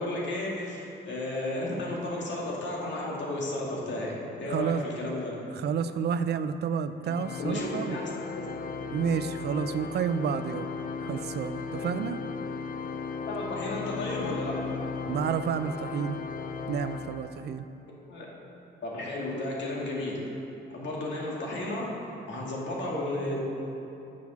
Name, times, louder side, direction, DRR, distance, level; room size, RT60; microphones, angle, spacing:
voice 1, 0.0-5.4 7.4-8.5 13.3-14.6 18.1-18.3 18.8-20.2 20.7-21.9 22.3-23.4, left 1 dB, 65° left, -3 dB, 2.2 m, -33 dB
voice 2, 4.5-4.8 5.5-8.1 8.9-10.7 11.0-12.2 15.1-16.2 16.7-17.6, right 7 dB, 55° right, 12 dB, 0.4 m, -30 dB
Organ, 7.1-17.7, left 5 dB, 45° left, 0.5 m, -36 dB
7.7 x 7.2 x 6.2 m, 2.9 s
cardioid pair, 90°, 20 cm